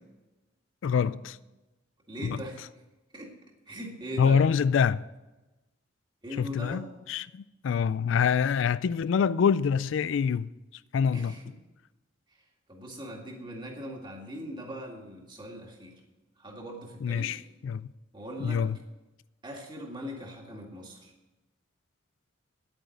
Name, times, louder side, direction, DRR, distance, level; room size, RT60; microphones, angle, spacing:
voice 1, 0.8-1.4 2.2-2.4 4.2-5.0 6.4-10.5 10.9-11.3 17.0-17.9 18.4-18.8, left 6 dB, 75° left, 0.3 m, -26 dB
voice 2, 2.1-2.6 3.1-3.3 3.7-4.5 6.2-7.0 11.1-11.4 12.7-16.0 16.4-17.4 18.1-18.6 19.4-21.1, equal, 25° right, 2.1 m, -40 dB
10.0 x 8.9 x 6.5 m
head